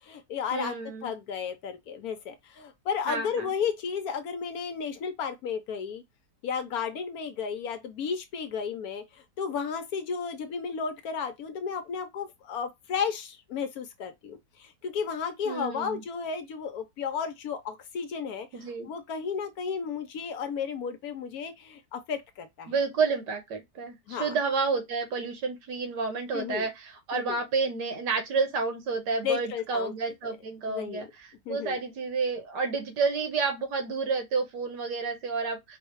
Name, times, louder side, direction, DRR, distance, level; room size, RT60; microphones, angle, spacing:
voice 1, 0.0-0.7 1.0-6.0 6.4-18.5 18.8-22.7 24.1-24.3 26.3-26.7 27.1-27.4 29.2-29.9 30.2-30.4 30.7-31.1 31.5-31.8, left 6 dB, 70° left, 1.0 m, -33 dB
voice 2, 0.5-1.1 3.1-3.5 15.4-16.0 18.5-18.9 22.7-35.8, right 4 dB, 85° right, 1.7 m, -30 dB
4.7 x 2.2 x 3.0 m
omnidirectional pair, 1.8 m